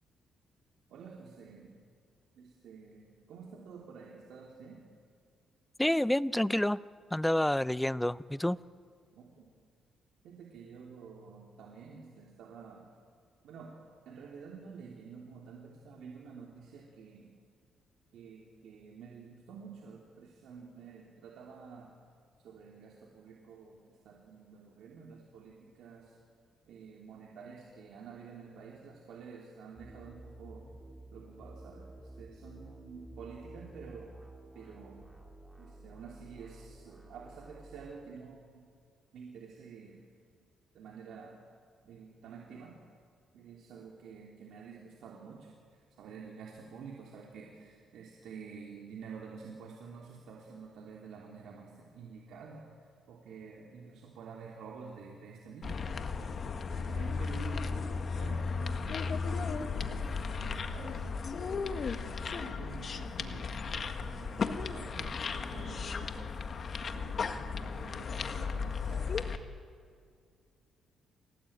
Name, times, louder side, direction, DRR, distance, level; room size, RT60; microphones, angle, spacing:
voice 1, 0.9-1.7 2.3-4.8 9.1-9.5 10.2-12.8 13.4-13.7 14.0-17.3 18.1-21.9 22.4-26.2 26.7-30.6 31.1-34.1 34.5-35.0 35.6-38.6 39.1-40.0 40.7-41.4 41.8-42.7 43.3-55.9 56.5-69.2, right 5 dB, 75° right, -1 dB, 3.2 m, -49 dB
voice 2, 5.8-6.8 7.1-8.6, left 1 dB, 5° left, 18 dB, 0.5 m, -28 dB
sound 1, 29.7-37.9, right 2 dB, 10° right, 3.8 m, -52 dB
sound 2, 55.6-69.4, left 5 dB, 45° left, 1.7 m, -35 dB
28.0 x 18.5 x 8.9 m, 2.2 s
cardioid pair, 90°, 0 cm